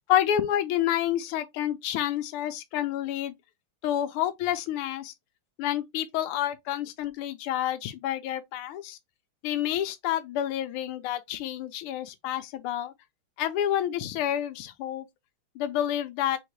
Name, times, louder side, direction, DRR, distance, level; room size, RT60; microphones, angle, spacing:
voice 1, 0.1-3.3 3.8-5.1 5.6-9.0 9.4-12.9 13.4-15.1 15.6-16.4, left 11 dB, 85° left, 1.5 m, -29 dB
3.8 x 3.6 x 3.1 m
omnidirectional pair, 2.4 m